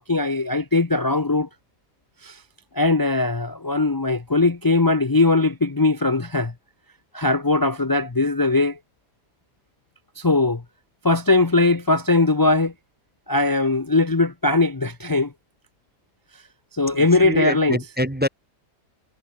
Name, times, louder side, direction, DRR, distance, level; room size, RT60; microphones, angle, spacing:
voice 1, 0.0-1.5 2.2-2.4 2.7-6.5 7.1-8.8 10.2-10.6 11.0-12.7 13.3-15.3 16.7-17.8, left 2 dB, 30° left, 0.4 m, -20 dB
voice 2, 17.0-18.3, equal, 10° right, 0.7 m, -25 dB
omnidirectional pair, 1.8 m